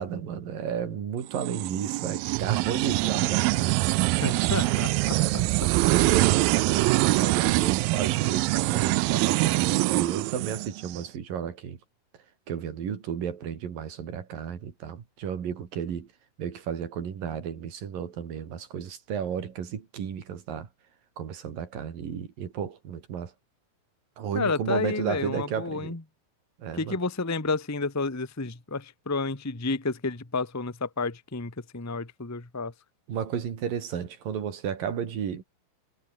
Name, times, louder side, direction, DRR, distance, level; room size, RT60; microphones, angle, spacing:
voice 1, 0.0-4.4 5.0-5.5 5.8-11.8 12.5-16.1 16.4-20.7 21.2-23.3 24.2-26.0 26.6-27.0 33.1-35.4, right 8 dB, 70° right, 4.5 m, -33 dB
sound 1, 1.3-11.0, right 22 dB, 90° right, 2.4 m, -24 dB
voice 2, 4.2-5.4 5.9-6.1 24.3-26.0 26.8-32.7, left 3 dB, 15° left, 0.5 m, -31 dB
omnidirectional pair, 4.1 m